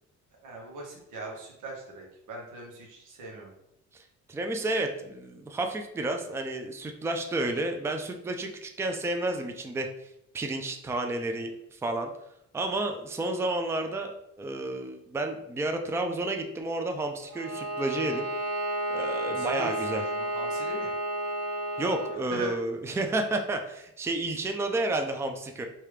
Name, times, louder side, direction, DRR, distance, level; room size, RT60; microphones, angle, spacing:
voice 1, 0.4-3.5 19.3-20.9 22.3-22.5 22.9-23.0, right 2 dB, 90° right, -1 dB, 1.2 m, -41 dB
voice 2, 4.3-9.9 10.3-12.1 12.5-18.3 18.9-20.0 21.8-25.7, right 2 dB, 10° right, 4 dB, 0.4 m, -31 dB
Bowed string instrument, 17.3-22.2, right 1 dB, 70° right, 0.6 m, -31 dB
3.4 x 2.8 x 3.2 m, 0.80 s
cardioid pair, 90°, 30 cm